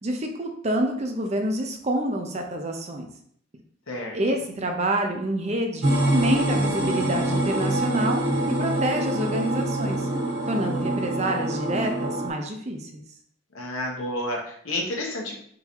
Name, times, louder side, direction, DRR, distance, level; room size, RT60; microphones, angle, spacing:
voice 1, 0.0-3.1 4.1-10.0 10.5-13.0, right 1 dB, 30° right, 3 dB, 0.5 m, -27 dB
sound 1, 5.8-12.3, right 1 dB, 85° right, 1.5 m, -25 dB
voice 2, 13.5-15.4, left 1 dB, 80° left, -1 dB, 1.1 m, -30 dB
3.8 x 2.7 x 4.5 m, 0.65 s
head